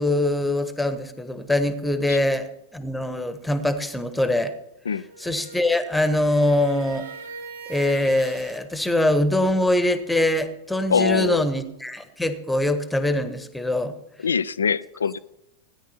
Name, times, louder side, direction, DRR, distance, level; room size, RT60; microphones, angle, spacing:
voice 1, 0.0-4.5 5.2-7.1 7.7-13.9, left 1 dB, 5° left, 1.3 m, -23 dB
sound 1, 5.0-8.6, right 4 dB, 75° right, 3.4 m, -41 dB
voice 2, 10.9-11.4 14.2-15.2, left 6 dB, 70° left, 0.5 m, -23 dB
17.0 x 10.0 x 4.3 m
figure-of-eight pair, 90°, 0 cm